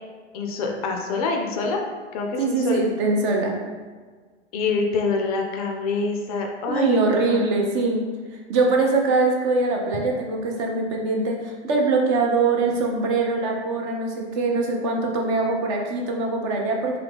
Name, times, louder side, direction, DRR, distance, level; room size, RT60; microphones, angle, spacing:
voice 1, 0.3-1.8 2.1-2.8 4.5-7.4, left 4 dB, 35° left, 2 dB, 0.4 m, -26 dB
voice 2, 2.4-3.6 6.7-8.0 8.5-17.0, right 3 dB, 30° right, 0 dB, 0.4 m, -22 dB
3.7 x 2.8 x 3.4 m, 1.5 s
figure-of-eight pair, 100°, 34 cm